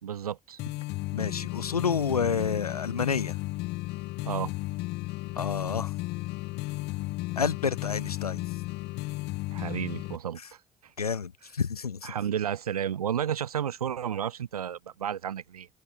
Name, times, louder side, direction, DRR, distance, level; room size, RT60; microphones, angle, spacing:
voice 1, 0.0-0.6 4.2-4.5 9.5-10.4 12.0-15.7, right 9 dB, 85° right, 1.8 m, -32 dB
sound 1, 0.6-10.2, left 20 dB, 65° left, 1.3 m, -34 dB
voice 2, 1.1-3.4 5.4-5.9 7.4-8.4 11.0-12.1, left 6 dB, 90° left, 0.7 m, -29 dB
open air
figure-of-eight pair, 40°, 19 cm